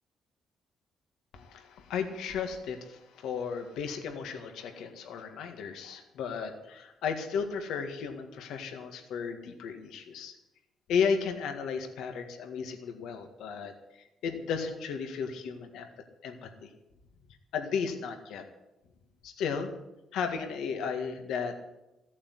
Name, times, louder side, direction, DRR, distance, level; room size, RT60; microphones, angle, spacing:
voice 1, 1.3-10.4 10.9-15.9 16.2-16.7 17.5-18.4 19.2-19.7 20.1-21.5, left 6 dB, 85° left, 6 dB, 1.8 m, -34 dB
15.0 x 8.5 x 9.7 m, 0.96 s
cardioid pair, 90°, 0 cm